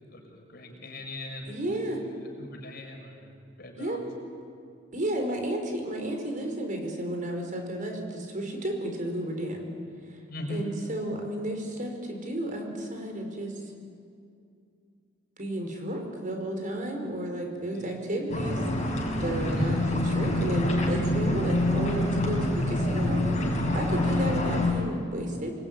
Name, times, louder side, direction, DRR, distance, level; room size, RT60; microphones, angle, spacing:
voice 1, 0.0-1.6 2.0-3.3 3.6-4.0 10.3-10.7 17.8-18.0 19.5-19.9, left 1 dB, 55° left, 2 dB, 6.0 m, -39 dB
voice 2, 1.5-2.0 3.8-4.0 4.9-9.7 10.5-13.5 15.4-18.6 19.2-23.2 23.7-25.5, right 1 dB, 45° right, 3 dB, 5.3 m, -32 dB
sound 1, 18.3-24.7, left 1 dB, 40° left, 6.7 m, -26 dB
28.0 x 21.0 x 9.7 m, 2.4 s
head